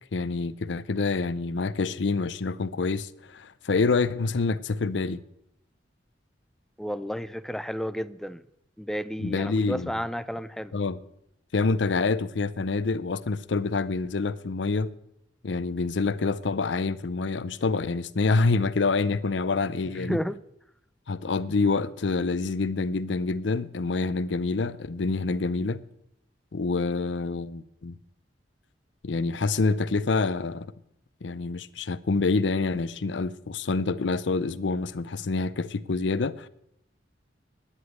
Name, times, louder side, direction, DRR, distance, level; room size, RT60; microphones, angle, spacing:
voice 1, 0.1-5.2 9.2-9.9 10.7-11.0 11.5-14.9 15.4-20.2 21.1-25.8 26.5-27.9 29.0-30.7 31.2-36.5, left 3 dB, 80° left, 0.6 m, -27 dB
voice 2, 6.8-8.4 8.8-10.8 20.0-20.4, equal, ahead, 0.4 m, -32 dB
10.0 x 8.1 x 9.3 m
head